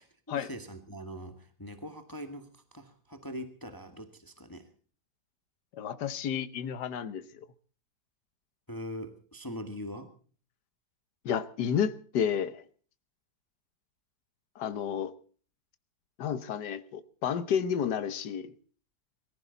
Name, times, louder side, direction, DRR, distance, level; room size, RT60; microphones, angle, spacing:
voice 1, 0.0-4.7 8.7-10.1, equal, 15° left, 8 dB, 1.7 m, -42 dB
voice 2, 5.7-7.2 11.2-12.6 14.6-15.1 16.2-18.5, left 8 dB, 80° left, 13 dB, 1.6 m, -31 dB
22.5 x 15.5 x 4.0 m, 0.42 s
omnidirectional pair, 1.8 m